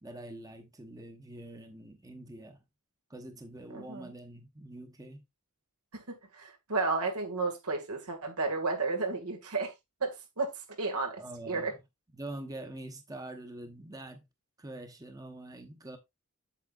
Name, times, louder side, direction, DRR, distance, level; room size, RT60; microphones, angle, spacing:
voice 1, 0.0-2.6 3.1-5.2 11.2-11.8 12.1-14.2 14.6-16.0, right 1 dB, 15° right, 0.9 m, -45 dB
voice 2, 3.7-4.1 5.9-9.7 10.0-10.5 10.8-11.2 11.5-11.7, right 3 dB, 90° right, 2.0 m, -32 dB
8.3 x 7.1 x 2.4 m
head